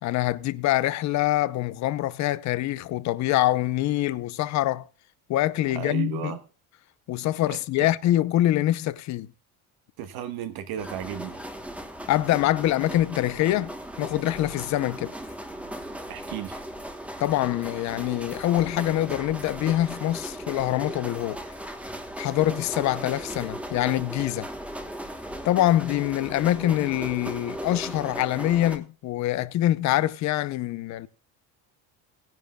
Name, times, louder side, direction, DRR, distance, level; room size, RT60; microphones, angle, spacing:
voice 1, 0.0-4.9 5.3-6.4 7.1-9.3 12.1-15.1 17.2-21.4 22.2-24.5 25.4-31.1, left 14 dB, 45° left, 0.7 m, -25 dB
voice 2, 5.7-6.4 7.5-7.9 10.0-11.4 16.1-16.6, right 10 dB, 60° right, 1.4 m, -34 dB
sound 1, 10.8-28.8, right 1 dB, 5° right, 1.1 m, -37 dB
18.5 x 10.5 x 2.3 m
cardioid pair, 175°, 40 cm